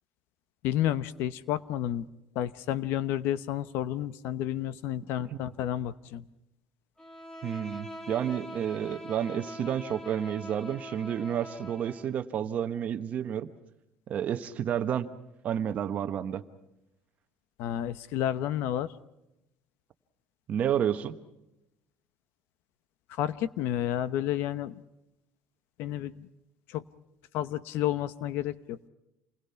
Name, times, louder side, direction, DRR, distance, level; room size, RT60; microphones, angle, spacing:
voice 1, 0.6-2.0 2.3-6.2 17.6-18.9 23.2-24.8 25.8-26.3 26.7-26.8 27.3-28.8, left 12 dB, 70° left, 16 dB, 1.0 m, -31 dB
Bowed string instrument, 7.0-12.2, equal, 15° left, 1.7 m, -43 dB
voice 2, 7.4-13.5 14.1-15.1 15.4-16.4 20.5-21.1, right 9 dB, 40° right, 10 dB, 1.2 m, -30 dB
28.0 x 21.0 x 5.8 m, 0.88 s
cardioid pair, 165°, 4 cm